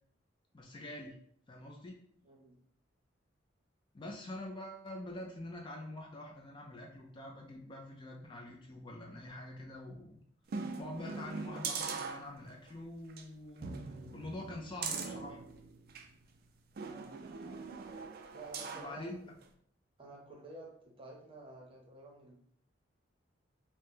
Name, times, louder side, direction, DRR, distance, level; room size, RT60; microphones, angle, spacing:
voice 1, 0.5-1.2 1.5-2.0 3.9-10.2 10.8-15.4 18.7-19.2, left 1 dB, 25° left, 0 dB, 0.4 m, -45 dB
voice 2, 2.2-2.6 16.9-17.1 18.3-19.4 20.0-22.4, right 2 dB, 30° right, -1 dB, 0.7 m, -51 dB
sound 1, 10.5-12.7 13.1-13.2 13.6-16.1 16.8-19.0 19.4-19.5, right 5 dB, 55° right, 0.3 m, -41 dB
2.8 x 2.1 x 3.4 m, 0.65 s
head